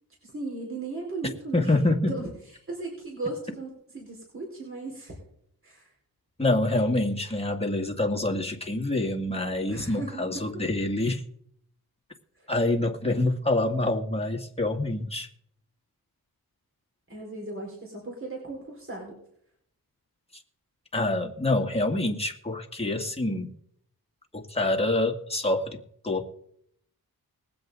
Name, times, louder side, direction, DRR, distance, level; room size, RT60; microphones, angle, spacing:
voice 1, 0.2-1.7 2.1-2.2 2.7-5.1 5.6-5.9 9.7-10.4 12.4-12.5 17.1-19.2, right 2 dB, 35° right, -1 dB, 4.6 m, -36 dB
voice 2, 1.5-2.1 6.4-11.2 12.5-15.3 20.9-23.5 24.3-25.8 26.0-26.3, left 2 dB, 15° left, 1 dB, 2.2 m, -26 dB
21.0 x 7.9 x 4.0 m, 0.69 s
cardioid pair, 55°, 38 cm